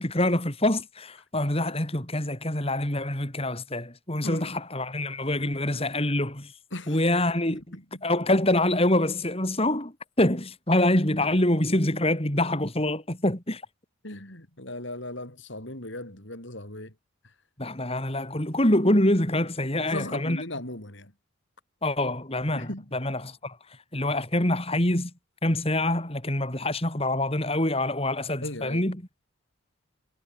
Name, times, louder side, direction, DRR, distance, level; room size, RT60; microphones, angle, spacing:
voice 1, 0.0-6.5 6.9-7.6 8.0-9.9 10.2-13.6 17.6-20.4 21.8-23.5 23.9-25.1 25.4-29.0, left 1 dB, 30° left, 3.9 m, -25 dB
voice 2, 4.2-4.6 6.7-7.0 7.5-8.0 14.0-16.9 19.8-21.1 22.6-22.9 28.4-28.8, left 1 dB, 60° left, 5.2 m, -37 dB
head